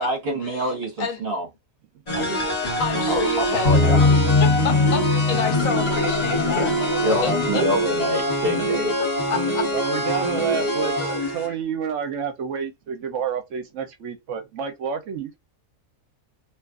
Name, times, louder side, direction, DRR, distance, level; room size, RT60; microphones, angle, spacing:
voice 1, 0.0-1.5 2.1-2.5 3.1-3.2 3.5-4.0 6.5-6.7 7.0-8.9, equal, 45° right, 1.2 m, -26 dB
sound 1, 2.1-11.5, equal, 30° left, 1.3 m, -24 dB
voice 2, 2.8-6.7 7.2-7.6 9.3-9.7 11.0-11.5, left 6 dB, 85° left, 1.2 m, -29 dB
sound 2, 3.7-7.4, left 3 dB, 55° left, 1.1 m, -21 dB
voice 3, 9.7-15.3, right 7 dB, 70° right, 0.9 m, -29 dB
2.9 x 2.4 x 2.3 m
omnidirectional pair, 1.4 m